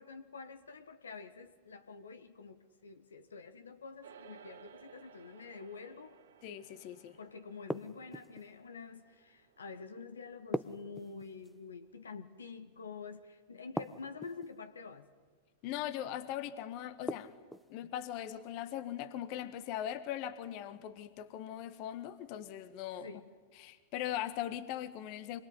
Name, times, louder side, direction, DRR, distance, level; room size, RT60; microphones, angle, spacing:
voice 1, 0.0-6.2 7.2-15.1 23.0-23.3, left 5 dB, 80° left, 9 dB, 1.6 m, -48 dB
sound 1, 4.0-13.5, right 8 dB, 75° right, 3.0 m, -60 dB
voice 2, 6.4-7.2 15.6-17.3 17.7-23.1 23.6-25.4, left 11 dB, 45° left, 12 dB, 1.6 m, -40 dB
sound 2, 7.7-8.5 10.5-11.6 13.8-14.5 17.1-17.7, left 1 dB, 5° left, 1.0 m, -39 dB
25.5 x 22.5 x 9.9 m, 1.5 s
figure-of-eight pair, 100°, 0 cm